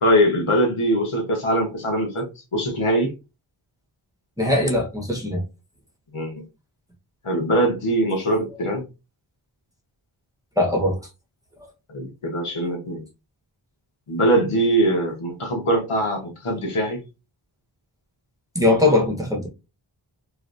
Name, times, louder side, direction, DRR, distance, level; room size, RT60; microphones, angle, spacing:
voice 1, 0.0-3.1 6.1-6.4 7.2-8.8 11.9-13.0 14.1-17.0, right 1 dB, 90° left, 1.3 m, -22 dB
voice 2, 4.4-5.4 10.6-11.0 18.5-19.5, left 2 dB, 5° right, 1.3 m, -20 dB
3.2 x 3.0 x 2.6 m
wide cardioid pair, 45°, 49 cm